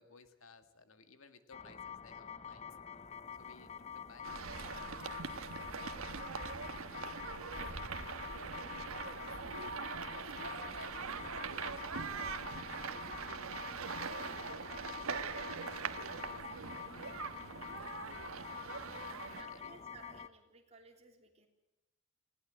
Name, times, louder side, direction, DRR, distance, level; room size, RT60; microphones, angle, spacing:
voice 1, 0.0-2.6 3.3-7.1 7.6-9.7 10.3-12.6 12.9-13.5 13.9-18.3 19.3-19.7, left 3 dB, 75° left, 9 dB, 1.9 m, -60 dB
sound 1, 1.5-20.3, left 7 dB, 30° left, 0.6 m, -47 dB
sound 2, 4.2-19.4, right 5 dB, 85° right, 1.3 m, -42 dB
voice 2, 19.3-21.5, right 4 dB, 30° right, 2 dB, 3.3 m, -58 dB
20.5 x 17.5 x 7.8 m, 1.0 s
head